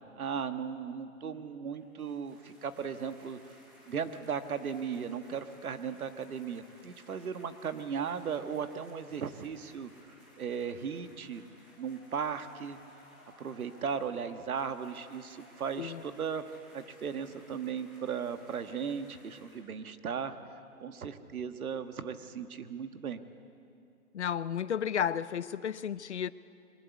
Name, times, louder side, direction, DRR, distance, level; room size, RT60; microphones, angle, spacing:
voice 1, 0.2-3.5 3.9-9.9 10.4-11.4 11.8-12.8 13.4-16.4 16.7-20.4 20.8-23.2, right 7 dB, 75° right, 1.5 m, -36 dB
sound 1, 1.7-19.6, equal, 5° right, 0.8 m, -59 dB
voice 2, 24.1-26.3, left 8 dB, 50° left, 0.5 m, -32 dB
22.5 x 20.5 x 8.4 m
hypercardioid pair, 170°, 43 cm